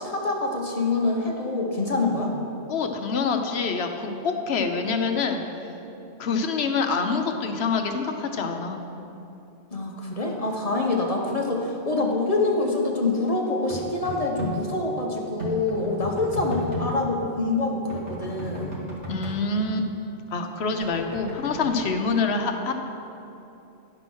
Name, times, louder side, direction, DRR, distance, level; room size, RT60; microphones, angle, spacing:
voice 1, 0.0-2.4 9.7-18.8, left 2 dB, 30° left, 0 dB, 1.0 m, -26 dB
voice 2, 2.7-5.5 6.2-8.8 19.1-19.9 20.3-22.7, left 4 dB, 60° left, 5 dB, 0.9 m, -26 dB
sound 1, 13.7-14.5 15.4-16.9 17.9-19.3 20.8-21.9, equal, 70° right, 2.2 m, -34 dB
11.0 x 5.9 x 6.2 m, 2.9 s
omnidirectional pair, 1.3 m